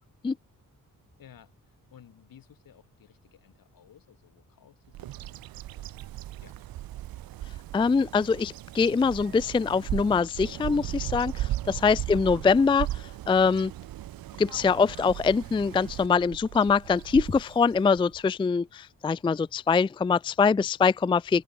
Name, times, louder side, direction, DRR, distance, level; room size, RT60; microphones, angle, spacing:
voice 1, 1.2-1.5 1.9-6.5 11.6-12.0, left 9 dB, 75° left, 6.2 m, -56 dB
Bird vocalization bird call bird song, 4.9-18.2, right 14 dB, 85° right, 0.8 m, -37 dB
voice 2, 7.7-12.9 13.3-13.7 14.4-21.4, left 5 dB, 15° left, 0.3 m, -23 dB
open air
cardioid pair, 100°, 34 cm